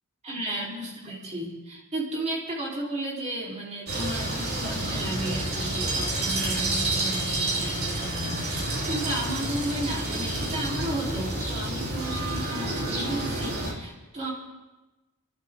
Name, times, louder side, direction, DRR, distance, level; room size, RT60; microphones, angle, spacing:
voice 1, 0.2-14.3, right 1 dB, 30° right, -4 dB, 3.3 m, -33 dB
sound 1, 3.9-13.7, right 1 dB, 50° right, 3.2 m, -29 dB
30.0 x 11.5 x 3.5 m, 1.1 s
head